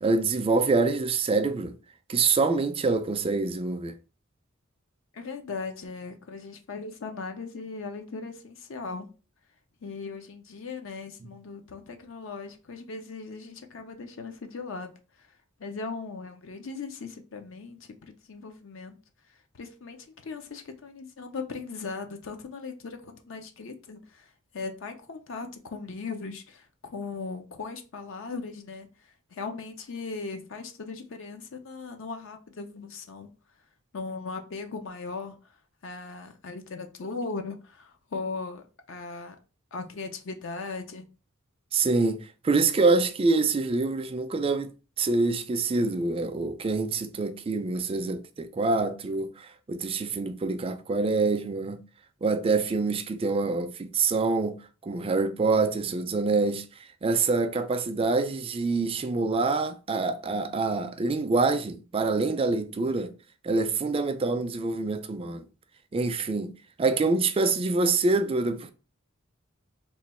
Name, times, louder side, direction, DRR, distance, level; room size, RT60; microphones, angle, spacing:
voice 1, 0.0-1.8 2.1-3.9 41.7-51.8 52.2-56.6 57.0-63.1 63.4-65.4 65.9-68.7, right 3 dB, 25° right, 0.3 m, -26 dB
voice 2, 5.1-9.1 9.8-19.0 19.2-33.3 33.9-39.4 39.7-41.1, left 4 dB, 65° left, 0.5 m, -38 dB
3.0 x 2.3 x 4.1 m
head